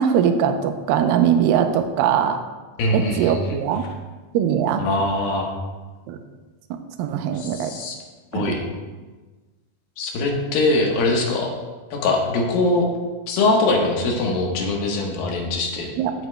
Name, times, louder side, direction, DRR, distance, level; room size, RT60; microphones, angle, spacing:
voice 1, 0.0-2.4 2.9-3.9 4.3-4.8 6.1-6.2 7.0-7.7 8.3-8.6 16.0-16.1, right 8 dB, 80° right, 7 dB, 2.3 m, -21 dB
voice 2, 2.8-3.6 4.8-5.5 7.3-8.0 8.3-8.6 10.0-11.5 11.9-12.9 13.3-15.9, left 2 dB, 75° left, 0 dB, 3.0 m, -22 dB
15.5 x 8.0 x 2.2 m, 1.3 s
omnidirectional pair, 4.4 m